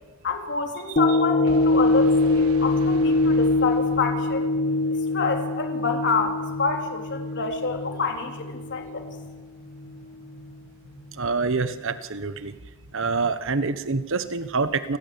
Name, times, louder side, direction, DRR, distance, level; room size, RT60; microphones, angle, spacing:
voice 1, 0.2-4.5 5.1-9.1, left 4 dB, 55° left, 4 dB, 3.3 m, -28 dB
sound 1, 1.0-9.4 9.9-10.0, left 2 dB, 35° left, 0.9 m, -23 dB
sound 2, 1.5-4.4, right 1 dB, 85° right, 1.6 m, -42 dB
voice 2, 11.1-12.5 12.9-15.0, right 4 dB, 65° right, 12 dB, 1.2 m, -26 dB
29.0 x 20.0 x 7.1 m, 1.3 s
head